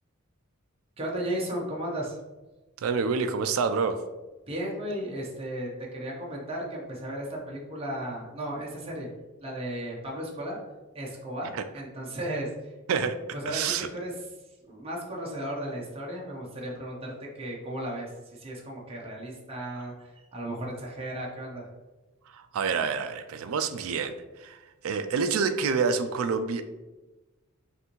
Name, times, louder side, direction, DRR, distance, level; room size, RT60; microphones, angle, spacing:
voice 1, 1.0-2.2 4.5-9.1 9.4-10.6 10.9-12.7 13.3-14.1 14.7-21.7, right 1 dB, 30° right, -3 dB, 0.8 m, -35 dB
voice 2, 2.8-4.0 11.5-11.6 12.9-13.2 13.5-13.9 22.3-26.6, right 5 dB, 75° right, 9 dB, 0.4 m, -28 dB
5.6 x 2.6 x 3.0 m, 1.1 s
head